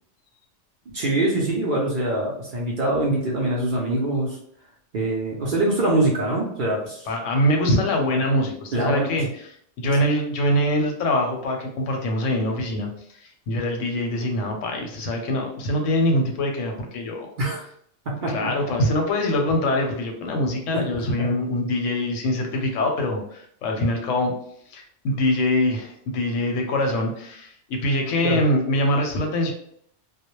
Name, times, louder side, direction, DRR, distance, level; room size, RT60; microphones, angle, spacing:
voice 1, 0.9-4.4 4.9-7.1 8.7-9.1 17.4-17.6 18.1-18.7 20.7-21.1 28.2-28.4, right 2 dB, 55° right, -3 dB, 0.6 m, -24 dB
voice 2, 7.1-9.5 9.8-17.3 18.3-24.3 24.7-29.5, left 1 dB, 80° left, 3 dB, 1.0 m, -24 dB
2.3 x 2.0 x 2.9 m, 0.66 s
omnidirectional pair, 1.3 m